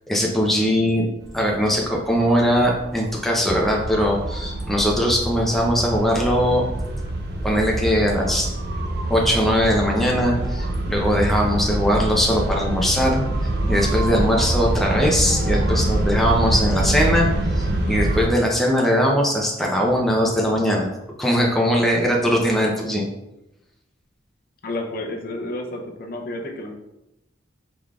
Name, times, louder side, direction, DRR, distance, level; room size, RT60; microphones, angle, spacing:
voice 1, 0.1-6.6 7.4-8.5 9.1-13.2 13.7-17.3 17.5-20.9 21.2-23.0, equal, ahead, -2 dB, 0.5 m, -20 dB
sound 1, 1.2-18.3, right 1 dB, 55° right, 0.5 m, -25 dB
voice 2, 24.6-26.7, left 1 dB, 50° left, 2 dB, 0.6 m, -30 dB
4.8 x 3.8 x 2.3 m, 0.92 s
head